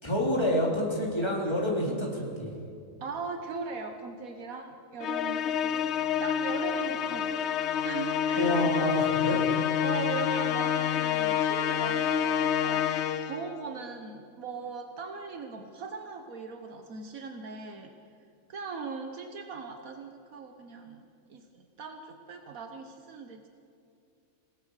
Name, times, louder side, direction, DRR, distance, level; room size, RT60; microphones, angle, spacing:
voice 1, 0.0-2.5 8.4-9.4, left 1 dB, 20° left, -2 dB, 4.0 m, -28 dB
voice 2, 3.0-7.3 7.8-9.1 9.8-17.9 18.5-21.0 21.3-23.5, right 5 dB, 80° right, 5 dB, 1.6 m, -39 dB
Musical instrument, 5.0-13.5, left 9 dB, 60° left, 0.9 m, -28 dB
26.5 x 18.0 x 6.6 m, 2.6 s
omnidirectional pair, 1.4 m